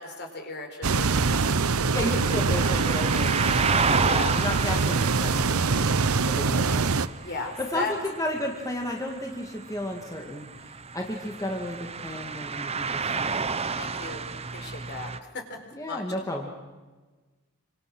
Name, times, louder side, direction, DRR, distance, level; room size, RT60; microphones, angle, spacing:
voice 1, 0.0-1.6 4.0-4.4 7.2-7.9 13.7-14.2 14.5-15.6 15.9-16.0, left 3 dB, 50° left, 4 dB, 4.5 m, -35 dB
sound 1, 0.8-7.1, right 4 dB, 85° right, 0.9 m, -24 dB
voice 2, 1.9-3.9 4.3-6.9 7.6-10.5 10.9-13.4 15.7-16.5, left 1 dB, 15° left, 1 dB, 2.2 m, -33 dB
sound 2, 1.9-15.2, right 5 dB, 30° right, 1.0 m, -32 dB
26.5 x 26.0 x 6.3 m, 1.3 s
head